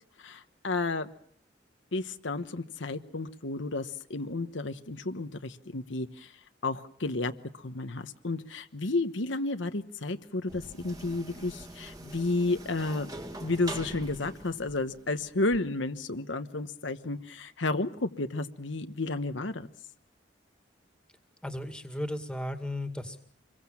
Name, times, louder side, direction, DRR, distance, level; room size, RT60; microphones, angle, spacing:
voice 1, 0.2-1.1 1.9-6.4 6.6-13.1 13.4-19.7, left 2 dB, 75° left, 8 dB, 1.2 m, -32 dB
sound 1, 10.5-15.6, right 1 dB, 20° right, 2.0 m, -44 dB
voice 2, 21.4-23.2, left 1 dB, 5° left, 6 dB, 2.2 m, -35 dB
26.5 x 22.0 x 7.2 m, 0.63 s
head